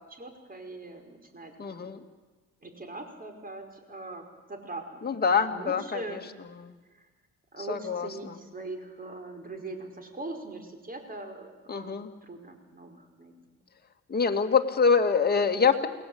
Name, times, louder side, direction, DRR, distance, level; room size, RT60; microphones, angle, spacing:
voice 1, 0.1-1.5 2.6-6.3 7.0-7.1 7.5-12.0 12.2-13.3, right 2 dB, 30° right, 6 dB, 5.0 m, -41 dB
voice 2, 1.6-2.0 5.0-6.2 6.6-6.8 7.7-8.3 11.7-12.1 14.1-15.9, left 5 dB, 30° left, 4 dB, 2.3 m, -25 dB
28.5 x 20.0 x 8.8 m, 1.3 s
cardioid pair, 90°, 30 cm